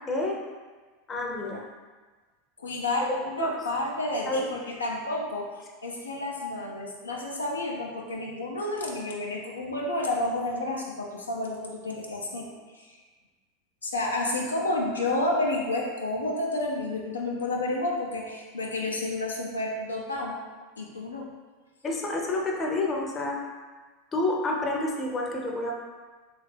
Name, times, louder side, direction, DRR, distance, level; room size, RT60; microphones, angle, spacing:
voice 1, 0.1-0.4 1.1-1.7 3.4-3.7 4.3-4.5 21.8-23.4 24.1-25.7, left 2 dB, 25° left, -1 dB, 0.6 m, -29 dB
voice 2, 2.6-5.5 5.8-13.0 13.8-20.4 20.8-21.3, left 2 dB, 85° left, -2 dB, 0.4 m, -30 dB
3.1 x 2.4 x 3.3 m, 1.4 s
hypercardioid pair, 85°, 0 cm